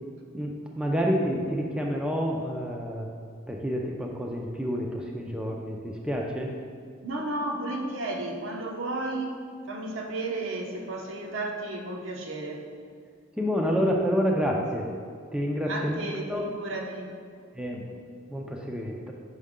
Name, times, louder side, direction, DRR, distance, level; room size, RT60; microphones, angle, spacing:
voice 1, 0.3-3.1 3.5-6.5 13.4-14.9 15.3-16.5 17.5-18.0 18.3-19.1, equal, 5° right, -1 dB, 0.4 m, -28 dB
voice 2, 7.0-9.4 9.7-12.7 15.7-17.1, right 2 dB, 70° right, 1 dB, 0.8 m, -33 dB
6.5 x 4.6 x 3.6 m, 2.1 s
head